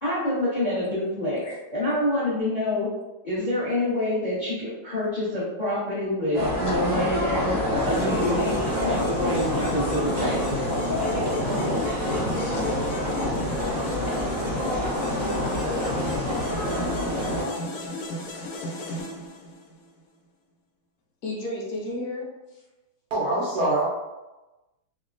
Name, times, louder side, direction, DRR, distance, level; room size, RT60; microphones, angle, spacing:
voice 1, 0.0-1.4 1.7-2.9 3.2-7.6 7.8-10.4 16.8-17.8, left 1 dB, 45° left, -11 dB, 0.6 m, -27 dB
sound 1, 6.3-17.4, left 1 dB, 45° right, 0.7 m, -27 dB
sound 2, 7.8-19.8, left 3 dB, 85° left, 1.5 m, -34 dB
voice 2, 11.4-12.1 21.2-22.6, left 1 dB, 70° left, -3 dB, 0.9 m, -34 dB
voice 3, 23.1-23.8, right 2 dB, 80° right, -5 dB, 0.8 m, -24 dB
3.6 x 2.1 x 2.4 m, 1.1 s
omnidirectional pair, 2.4 m